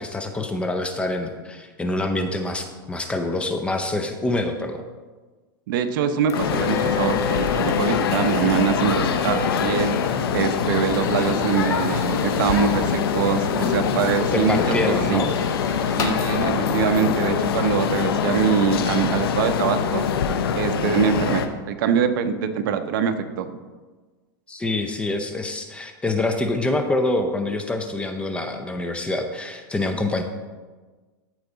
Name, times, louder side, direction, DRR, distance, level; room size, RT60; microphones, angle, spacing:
voice 1, 0.0-4.8 14.3-15.3 24.5-30.2, left 2 dB, 10° left, 6 dB, 0.6 m, -26 dB
voice 2, 5.7-9.9 10.3-15.2 16.0-20.0 20.6-23.6, right 7 dB, 60° right, 9 dB, 0.8 m, -23 dB
sound 1, 6.3-21.5, left 7 dB, 80° left, 0.9 m, -24 dB
sound 2, 6.3-16.1, left 6 dB, 25° left, 1.0 m, -32 dB
14.0 x 4.7 x 4.0 m, 1.3 s
supercardioid pair, 145°, 13 cm